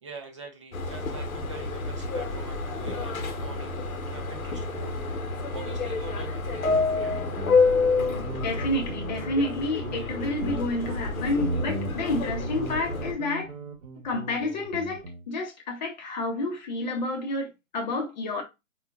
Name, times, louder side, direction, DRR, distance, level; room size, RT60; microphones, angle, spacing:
voice 1, 0.0-3.8 4.1-7.2, right 4 dB, 25° right, 0.5 m, -44 dB
Subway metro underground, 0.7-13.1, left 4 dB, 85° left, 0.9 m, -29 dB
Guitar, 6.8-15.2, right 2 dB, 65° right, 1.0 m, -37 dB
voice 2, 8.2-13.5 14.0-18.4, left 2 dB, 35° left, 0.8 m, -30 dB
4.2 x 2.4 x 2.3 m
hypercardioid pair, 150°, 41 cm